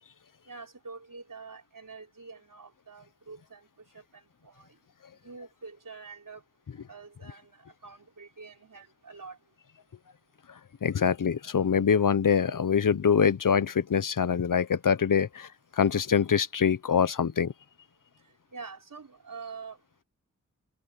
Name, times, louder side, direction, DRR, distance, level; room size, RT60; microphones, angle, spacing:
voice 1, 0.5-3.7 3.9-4.8 5.2-6.4 6.9-9.4 18.5-19.8, right 4 dB, 75° right, 4.9 m, -46 dB
voice 2, 10.8-15.5 15.8-17.5, left 7 dB, 75° left, 0.8 m, -24 dB
wide cardioid pair, 85°, 32 cm